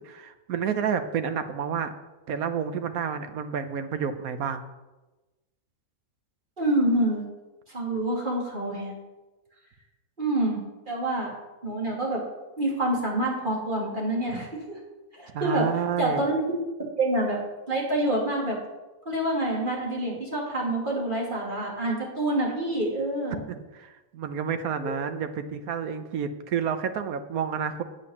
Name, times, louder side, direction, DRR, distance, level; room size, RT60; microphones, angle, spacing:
voice 1, 0.0-1.9 2.3-4.6 15.3-16.2 23.3-27.8, right 7 dB, 75° right, 9 dB, 1.3 m, -30 dB
voice 2, 6.6-7.2 7.7-8.9 10.2-11.3 11.6-12.2 12.6-14.8 15.2-15.7 16.0-16.6 17.0-17.4 17.7-18.6 19.0-23.4 24.8-24.9, right 1 dB, 35° right, -3 dB, 2.9 m, -27 dB
8.6 x 8.0 x 7.1 m, 1.1 s
omnidirectional pair, 1.5 m